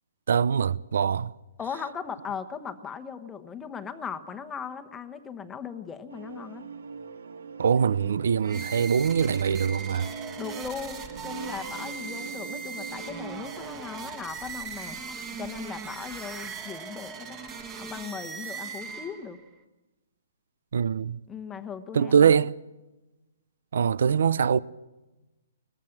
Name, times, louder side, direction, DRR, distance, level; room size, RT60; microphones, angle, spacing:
voice 1, 0.3-1.3 7.6-10.1 20.7-21.2 21.9-22.6 23.7-24.6, right 7 dB, 70° right, 0.7 m, -23 dB
voice 2, 1.6-6.7 10.4-15.0 15.3-17.4 17.8-19.4 21.3-22.3, left 6 dB, 10° left, 1.2 m, -38 dB
sound 1, 6.1-13.8, right 5 dB, 85° right, 2.0 m, -41 dB
sound 2, 8.4-19.5, right 5 dB, 15° right, 1.7 m, -39 dB
22.0 x 21.0 x 6.0 m
hypercardioid pair, 165°, 0 cm